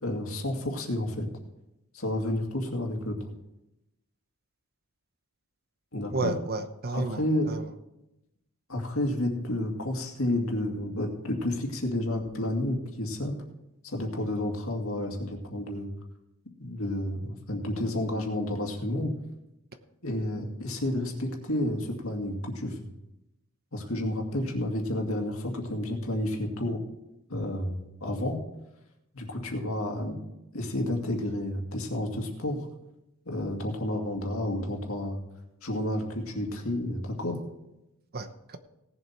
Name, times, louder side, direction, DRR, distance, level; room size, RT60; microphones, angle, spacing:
voice 1, 0.0-1.3 1.9-3.2 5.9-6.3 6.9-7.5 8.7-13.3 13.8-15.9 16.6-19.1 20.0-22.8 23.7-26.8 27.3-28.4 29.1-30.2 30.5-32.7 33.3-35.2 35.6-37.4, left 1 dB, 70° left, 2 dB, 2.3 m, -30 dB
voice 2, 6.1-7.6 38.1-38.6, right 3 dB, 45° right, 10 dB, 0.9 m, -32 dB
18.0 x 7.4 x 4.4 m, 0.90 s
head